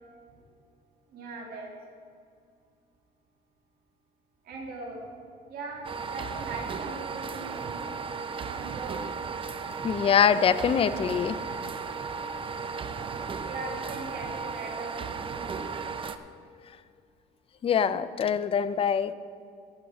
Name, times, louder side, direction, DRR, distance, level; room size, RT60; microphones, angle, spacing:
voice 1, 1.1-1.7 4.4-5.1 5.5-7.9 8.4-9.0 13.4-15.6, right 3 dB, 65° right, -1 dB, 2.7 m, -40 dB
sound 1, 5.8-16.2, right 5 dB, 30° right, 0.6 m, -35 dB
voice 2, 9.8-11.4 17.6-19.1, left 7 dB, 35° left, 13 dB, 0.5 m, -24 dB
18.0 x 6.2 x 5.0 m, 2.4 s
cardioid pair, 110°, 17 cm